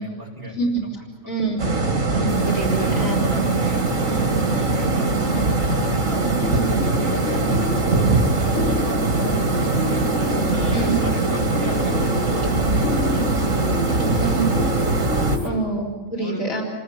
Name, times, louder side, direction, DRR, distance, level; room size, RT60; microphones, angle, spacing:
voice 1, 0.0-0.5 0.8-1.3 2.6-10.0 10.5-14.7 15.2-15.6 16.2-16.4, right 1 dB, 15° right, -5 dB, 7.9 m, -36 dB
voice 2, 0.5-1.6 2.1-3.2 6.5-6.7 10.3-11.0 14.2-14.5 15.4-16.6, right 3 dB, 85° left, -1 dB, 4.7 m, -26 dB
sound 1, 1.6-15.4, right 3 dB, 70° right, 2.7 m, -21 dB
sound 2, 2.3-15.5, right 3 dB, 50° right, 2.2 m, -42 dB
sound 3, 6.0-15.6, left 3 dB, 60° left, 1.9 m, -30 dB
30.0 x 19.0 x 7.1 m, 1.3 s
omnidirectional pair, 1.4 m